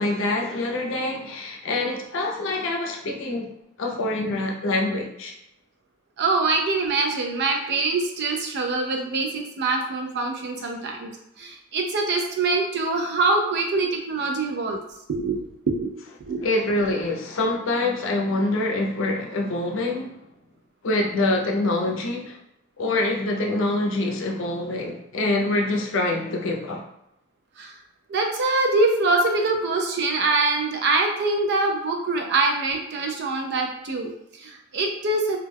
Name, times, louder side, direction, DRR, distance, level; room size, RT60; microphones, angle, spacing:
voice 1, 0.0-3.5 3.8-5.3 16.4-20.2 20.8-22.4 22.8-26.9, left 2 dB, 65° left, 1 dB, 0.5 m, -25 dB
voice 2, 6.2-11.1 11.4-14.8 15.1-15.4 15.7-15.9 16.3-16.5 27.6-27.8 28.1-35.4, right 3 dB, 55° right, 3 dB, 0.4 m, -24 dB
2.2 x 2.2 x 3.3 m, 0.82 s
head